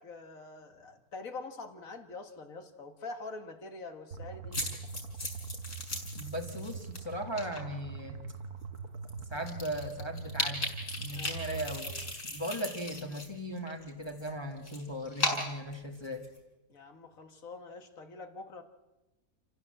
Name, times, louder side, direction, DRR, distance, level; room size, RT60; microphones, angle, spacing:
voice 1, 0.0-4.6 11.1-11.6 16.7-18.6, left 3 dB, 60° left, 7 dB, 2.0 m, -45 dB
sound 1, 4.1-12.1, right 4 dB, 80° right, 1.9 m, -43 dB
sound 2, 4.5-7.0 7.4-7.6 8.3-8.4 8.8-8.9 9.1-13.3 13.6-16.4, left 2 dB, 40° left, 5.0 m, -37 dB
voice 2, 6.1-8.2 9.3-10.7 11.0-11.9 12.2-16.3, equal, 20° left, 3 dB, 1.6 m, -38 dB
27.5 x 15.0 x 7.7 m, 1.1 s
omnidirectional pair, 1.6 m